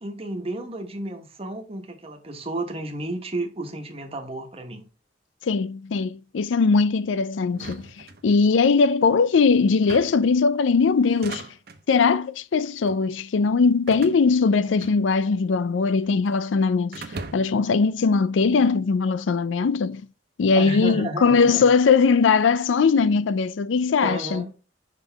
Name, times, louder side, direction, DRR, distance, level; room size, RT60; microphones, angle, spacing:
voice 1, 0.0-4.9 20.6-21.6 22.9-23.2 24.0-24.5, right 2 dB, 30° right, 1.2 m, -32 dB
voice 2, 5.4-7.9 8.2-11.4 11.9-17.0 17.3-20.0 20.4-24.4, left 5 dB, 85° left, 0.4 m, -20 dB
sound 1, 7.5-8.7 9.7-10.3 11.0-11.8 12.6-13.0 13.9-15.4 15.6-16.4 16.9-17.7, right 3 dB, 55° right, 0.9 m, -40 dB
5.8 x 5.5 x 3.4 m
head